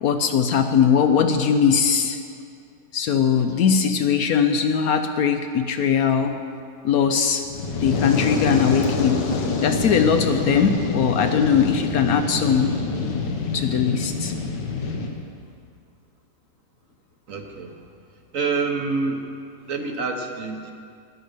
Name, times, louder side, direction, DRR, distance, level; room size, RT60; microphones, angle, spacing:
voice 1, 0.0-2.2 2.9-6.3 6.8-7.4 7.8-9.2 9.6-12.7 13.5-14.3, left 7 dB, 65° left, 7 dB, 1.0 m, -20 dB
Fire, 7.4-15.1, left 4 dB, 90° left, 1.8 m, -26 dB
voice 2, 17.3-17.8 18.3-19.3 19.7-20.7, right 4 dB, 55° right, 4 dB, 1.1 m, -27 dB
11.0 x 10.0 x 6.6 m, 2.3 s
omnidirectional pair, 1.8 m